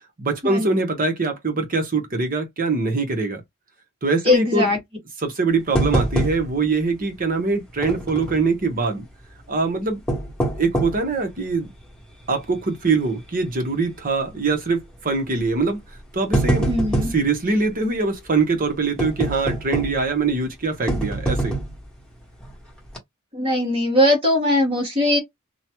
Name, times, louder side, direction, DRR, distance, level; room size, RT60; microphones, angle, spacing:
voice 1, 0.2-3.4 4.0-4.7 5.2-9.0 9.5-10.0 10.6-11.7 12.3-15.8 16.1-16.7 17.1-21.5, right 3 dB, 40° right, 0.9 m, -23 dB
voice 2, 4.2-4.8 16.6-17.1 23.3-25.2, left 1 dB, 25° right, 1.3 m, -20 dB
sound 1, 5.8-6.7 7.0-7.1 7.8-8.5 9.9-11.1 11.7-11.8 12.4-12.6 12.9-13.0 14.2-14.5 15.4-15.5 16.0-17.2 19.0-20.1 20.9-21.9 22.4-22.5 22.9-23.0, right 1 dB, 5° left, 1.1 m, -24 dB
2.8 x 2.2 x 2.9 m
head